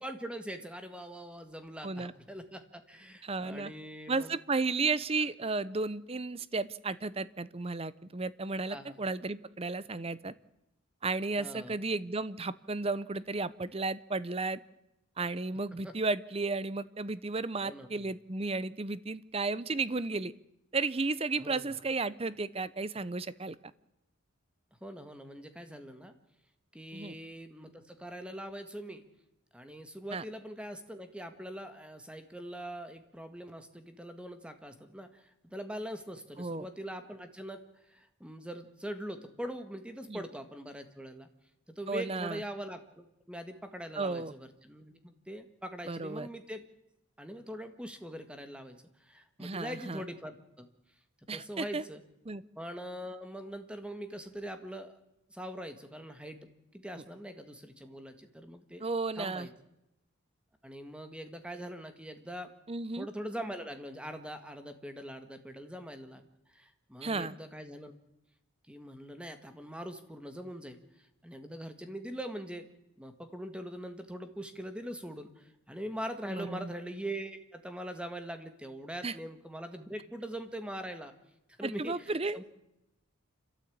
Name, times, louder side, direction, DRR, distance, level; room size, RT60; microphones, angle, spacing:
voice 1, 0.0-4.3 8.7-9.0 11.4-11.8 15.8-15.9 17.6-17.9 21.4-21.8 24.8-26.1 26.7-29.0 29.5-41.3 41.7-46.6 47.2-50.7 51.3-52.0 52.6-55.0 55.3-58.8 59.2-59.5 60.6-62.5 63.0-67.9 68.7-72.7 73.0-81.1 81.6-82.4, equal, 5° right, 8 dB, 1.8 m, -42 dB
voice 2, 3.2-3.7 4.1-10.3 11.0-14.6 15.2-20.3 20.7-23.6 26.9-27.1 30.1-30.2 36.4-36.7 40.1-40.2 41.9-42.4 44.0-44.3 45.9-46.3 49.4-50.0 51.3-51.8 52.3-52.4 58.8-59.5 62.7-63.1 67.0-67.4 76.3-76.7 79.0-79.1 81.6-82.4, right 3 dB, 30° right, 17 dB, 0.7 m, -33 dB
29.0 x 13.5 x 8.6 m, 0.88 s
head